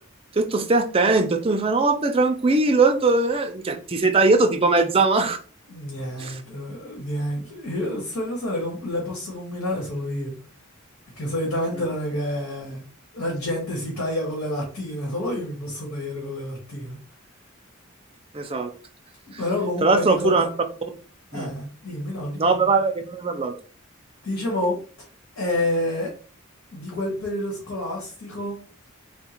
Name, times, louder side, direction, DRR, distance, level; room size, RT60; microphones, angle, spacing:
voice 1, 0.4-5.4 6.2-6.4 18.3-18.7 19.8-20.5 21.3-21.5 22.4-23.5, right 3 dB, 25° right, 5 dB, 0.5 m, -20 dB
voice 2, 5.7-10.3 11.2-12.8 13.1-17.0 19.3-20.5 21.3-22.7 24.2-24.8 25.4-26.1 26.7-28.5, left 1 dB, 70° left, -2 dB, 1.4 m, -28 dB
3.6 x 2.2 x 4.3 m, 0.39 s
head